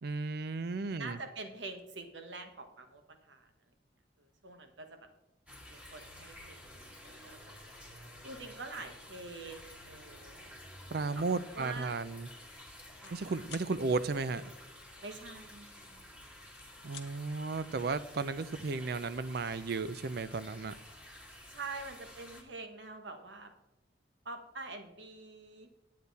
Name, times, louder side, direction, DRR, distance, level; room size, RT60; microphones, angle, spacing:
voice 1, 0.0-1.2 10.9-12.3 13.1-14.4 16.8-20.7, right 4 dB, 60° right, 15 dB, 0.5 m, -34 dB
voice 2, 1.0-3.5 4.2-5.1 5.7-7.5 8.2-10.4 11.1-11.2 11.5-11.9 13.0-13.2 15.0-16.3 21.5-23.5 24.2-25.7, right 3 dB, 85° right, 6 dB, 1.3 m, -46 dB
sound 1, 5.5-22.4, left 1 dB, 5° right, 1.6 m, -52 dB
sound 2, 11.1-11.4 11.8-12.0 12.3-13.2 13.4-13.7 15.3-16.1 16.4-17.1, left 10 dB, 65° left, 1.0 m, -52 dB
10.5 x 8.4 x 4.1 m, 0.94 s
head